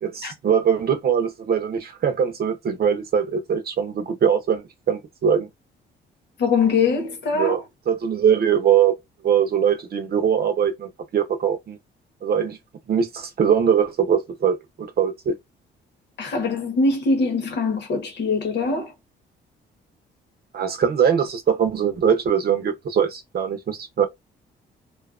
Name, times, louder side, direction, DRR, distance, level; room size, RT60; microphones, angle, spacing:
voice 1, 0.0-5.5 7.3-8.9 9.2-11.8 12.2-12.6 12.9-15.4 20.5-24.1, right 8 dB, 50° right, 0.8 m, -22 dB
voice 2, 6.4-7.6 16.2-18.9, left 4 dB, 60° left, 1.1 m, -22 dB
2.4 x 2.3 x 2.4 m
cardioid pair, 90°, 20 cm